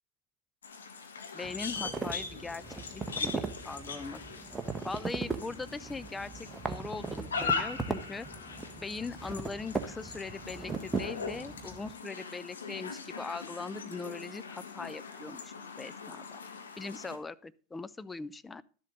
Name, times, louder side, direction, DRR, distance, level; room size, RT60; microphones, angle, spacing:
sound 1, 0.6-17.2, left 5 dB, 85° left, 1.6 m, -41 dB
voice 1, 1.3-2.6 2.9-4.2 4.8-8.3 8.7-16.4 16.8-18.6, left 4 dB, 15° left, 16 dB, 0.5 m, -41 dB
sound 2, 1.4-11.9, right 4 dB, 15° right, 1.2 m, -39 dB
12.5 x 7.4 x 3.8 m, 0.44 s
hypercardioid pair, 90°, 0 cm